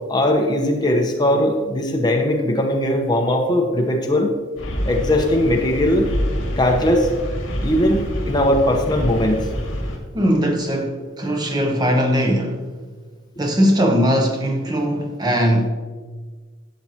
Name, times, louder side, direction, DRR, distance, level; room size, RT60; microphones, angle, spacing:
voice 1, 0.1-4.3 4.9-6.1 6.6-7.1 7.6-9.4, left 1 dB, 20° left, 2 dB, 1.0 m, -19 dB
sound 1, 4.6-10.0, equal, 70° left, 2.0 m, -26 dB
voice 2, 10.1-12.6 13.4-15.7, equal, 20° right, 3 dB, 0.8 m, -19 dB
12.5 x 7.6 x 2.9 m, 1.4 s
head